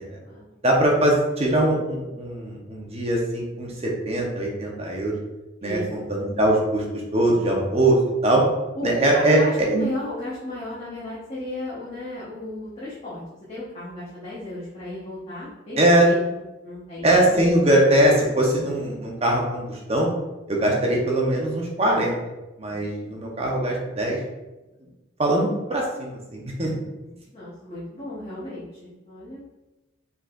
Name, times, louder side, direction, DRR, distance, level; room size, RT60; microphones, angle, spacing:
voice 1, 0.6-5.1 5.6-6.8 7.1-8.0 8.2-8.4 8.8-9.9 15.8-16.1 17.0-20.1 20.5-22.2 22.6-24.2 25.2-26.7, right 1 dB, 30° right, -1 dB, 0.9 m, -21 dB
voice 2, 5.6-6.1 8.7-17.3 26.7-29.5, left 1 dB, 30° left, -10 dB, 1.1 m, -35 dB
4.8 x 4.0 x 2.5 m, 1.0 s
head